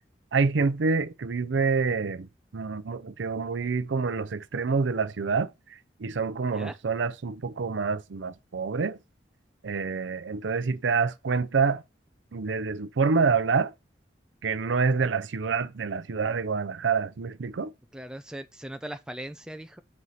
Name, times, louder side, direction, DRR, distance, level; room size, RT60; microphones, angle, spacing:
voice 1, 0.3-2.3 2.5-5.5 6.0-9.0 9.6-11.8 12.3-13.7 14.4-17.7, right 4 dB, 85° right, 0.6 m, -27 dB
voice 2, 17.9-19.8, right 1 dB, 5° right, 0.5 m, -39 dB
5.3 x 4.2 x 4.7 m
head